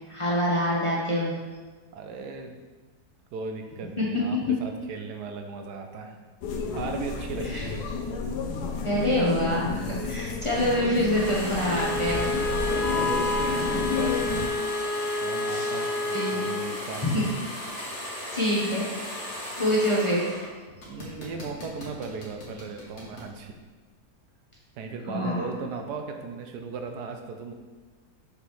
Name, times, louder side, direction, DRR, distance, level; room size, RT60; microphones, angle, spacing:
voice 1, 0.1-1.3 4.0-4.1 7.4-7.6 8.8-12.4 15.5-15.8 16.1-16.5 17.0-17.3 17.9-18.9 19.6-20.3 25.0-25.5, equal, 25° left, -6 dB, 0.9 m, -26 dB
voice 2, 1.9-2.5 3.3-6.2 6.7-7.8 13.0-14.2 15.2-17.0 20.9-23.5 24.8-27.5, right 4 dB, 85° right, 5 dB, 1.3 m, -37 dB
sound 1, 6.4-14.5, left 5 dB, 80° left, 1.2 m, -30 dB
sound 2, 11.1-20.5 20.8-23.3, left 1 dB, 45° left, 1.7 m, -37 dB
Bowed string instrument, 11.6-16.7, left 2 dB, 30° right, 0.8 m, -30 dB
6.4 x 5.1 x 3.1 m, 1.3 s
omnidirectional pair, 1.7 m